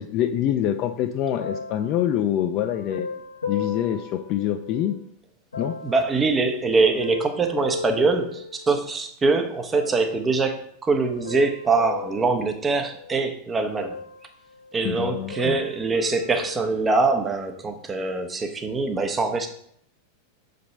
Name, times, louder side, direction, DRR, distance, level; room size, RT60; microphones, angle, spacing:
voice 1, 0.0-3.1 3.5-5.0 5.6-5.7 14.8-15.6, left 10 dB, 45° left, 6 dB, 0.5 m, -25 dB
sound 1, 1.4-5.0 5.5-9.0 9.7-10.4 11.0-13.3 13.8-14.8 15.0-17.1 17.8-17.9, left 5 dB, 90° left, 1.0 m, -37 dB
voice 2, 5.8-14.0 14.7-19.5, right 3 dB, 20° right, 6 dB, 1.0 m, -23 dB
6.8 x 5.2 x 3.2 m, 0.68 s
hypercardioid pair, 95°, 0 cm